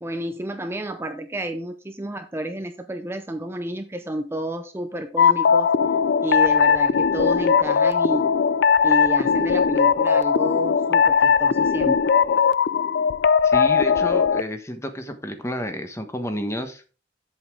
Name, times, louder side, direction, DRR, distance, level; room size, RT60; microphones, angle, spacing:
voice 1, 0.0-5.7 6.2-8.3 8.8-12.0, right 1 dB, 15° right, 7 dB, 0.6 m, -30 dB
sound 1, 5.2-14.4, left 6 dB, 60° left, 0.4 m, -19 dB
voice 2, 13.4-16.8, equal, 15° left, 7 dB, 1.3 m, -30 dB
8.3 x 7.9 x 3.7 m, 0.35 s
head